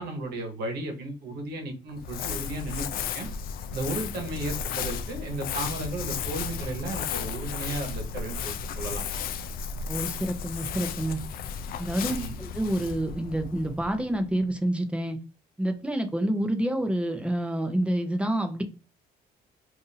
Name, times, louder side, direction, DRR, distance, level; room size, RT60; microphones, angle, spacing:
voice 1, 0.0-3.3 3.7-9.0 12.1-12.3, right 2 dB, 70° right, 3 dB, 1.1 m, -34 dB
Crumpling crinkling, 1.9-14.4, left 7 dB, 60° left, 0.4 m, -34 dB
voice 2, 9.9-11.2 11.8-15.2 15.6-18.6, right 1 dB, 5° right, 6 dB, 0.7 m, -28 dB
2.7 x 2.6 x 4.0 m, 0.32 s
cardioid pair, 110°, 17 cm